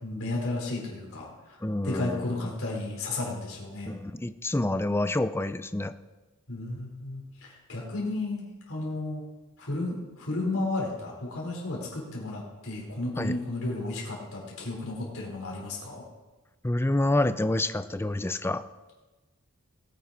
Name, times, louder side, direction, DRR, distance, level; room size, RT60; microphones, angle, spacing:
voice 1, 0.0-3.9 6.5-9.2 9.6-16.0, left 2 dB, 65° left, -3 dB, 4.4 m, -33 dB
voice 2, 1.6-2.2 3.9-5.9 13.2-13.3 16.6-18.6, left 1 dB, 10° left, 12 dB, 0.5 m, -27 dB
20.0 x 9.2 x 4.4 m, 1.2 s
head